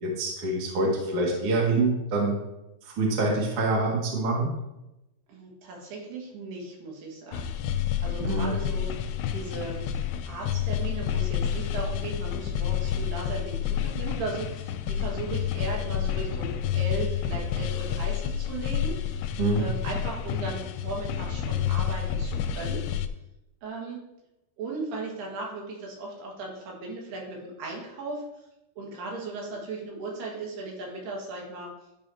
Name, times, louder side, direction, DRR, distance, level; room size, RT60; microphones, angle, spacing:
voice 1, 0.0-2.4 2.8-4.5 8.2-8.5 19.4-19.6, right 2 dB, 40° right, -3 dB, 2.7 m, -25 dB
voice 2, 5.3-7.5 8.0-8.9 9.3-9.8 10.3-19.3 19.6-22.8 23.6-24.0 24.6-28.2 28.8-31.7, right 3 dB, 80° right, -2 dB, 4.0 m, -37 dB
sound 1, 7.3-23.1, left 9 dB, 80° left, 2.5 m, -29 dB
12.0 x 8.6 x 2.9 m, 0.91 s
omnidirectional pair, 4.6 m